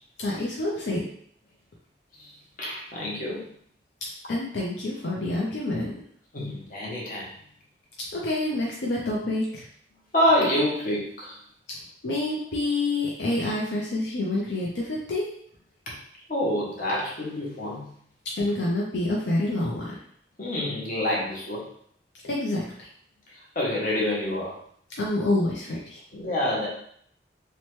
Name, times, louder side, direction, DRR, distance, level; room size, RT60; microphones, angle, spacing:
voice 1, 0.2-1.0 4.3-5.9 8.1-9.6 12.0-15.3 18.3-20.0 22.2-22.9 25.0-26.0, left 2 dB, 75° left, -4 dB, 0.5 m, -27 dB
voice 2, 2.6-3.5 6.3-7.3 10.1-11.4 16.3-17.9 20.4-21.7 23.3-24.6 26.1-26.7, left 1 dB, 50° left, -4 dB, 0.8 m, -27 dB
2.8 x 2.1 x 3.1 m, 0.64 s
head